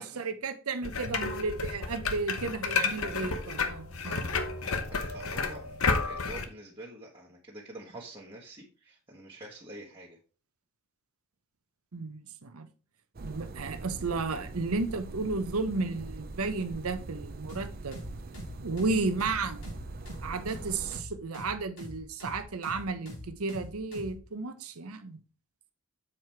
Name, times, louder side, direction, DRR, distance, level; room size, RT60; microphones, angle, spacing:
voice 1, 0.2-4.3 11.9-12.7 13.2-18.0 18.6-19.6 20.2-25.2, right 3 dB, 75° right, 0.8 m, -33 dB
sound 1, 0.8-6.4, left 4 dB, 65° left, 0.9 m, -31 dB
voice 2, 4.9-10.2, right 2 dB, 25° right, 1.3 m, -47 dB
sound 2, 13.1-21.0, right 2 dB, 45° right, 0.6 m, -42 dB
sound 3, 17.5-24.2, left 1 dB, 80° left, 4.5 m, -43 dB
7.4 x 4.9 x 4.5 m
head